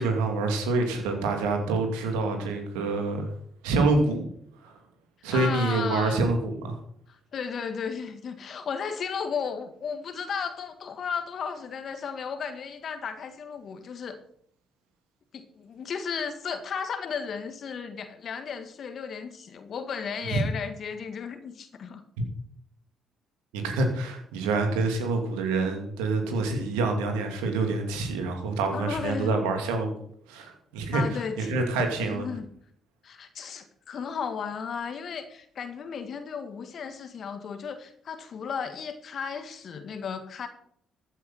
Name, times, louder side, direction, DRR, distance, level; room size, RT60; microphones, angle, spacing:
voice 1, 0.0-3.3 3.6-4.2 4.6-4.8 5.2-6.8 20.3-20.4 23.5-29.9 30.3-32.3, right 3 dB, 80° right, 4 dB, 2.6 m, -27 dB
voice 2, 5.3-6.3 7.3-14.2 15.3-22.0 28.7-29.3 30.9-31.5 32.0-32.5 33.0-40.5, left 6 dB, 55° left, 8 dB, 1.6 m, -34 dB
14.5 x 8.5 x 5.7 m, 0.65 s
hypercardioid pair, 45°, 0 cm